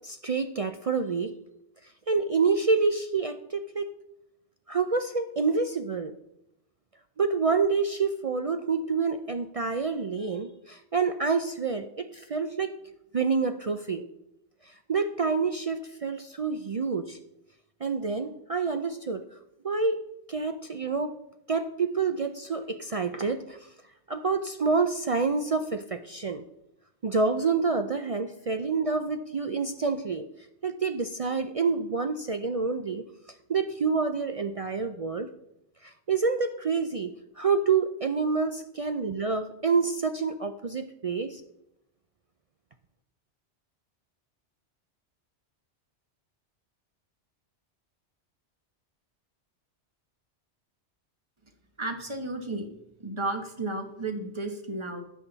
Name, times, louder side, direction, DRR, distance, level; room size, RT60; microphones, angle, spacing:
voice 1, 0.0-1.3 2.1-3.9 4.7-6.2 7.2-12.8 13.1-14.1 14.6-17.2 17.8-19.4 19.6-20.0 20.3-21.1 21.5-23.7 24.1-26.4 27.0-30.3 30.6-33.0 33.5-35.3 35.8-41.4, right 4 dB, 50° right, 8 dB, 0.4 m, -28 dB
voice 2, 51.8-52.7 53.0-55.0, right 2 dB, 25° right, 5 dB, 1.2 m, -33 dB
12.5 x 8.4 x 4.0 m, 0.84 s
omnidirectional pair, 1.2 m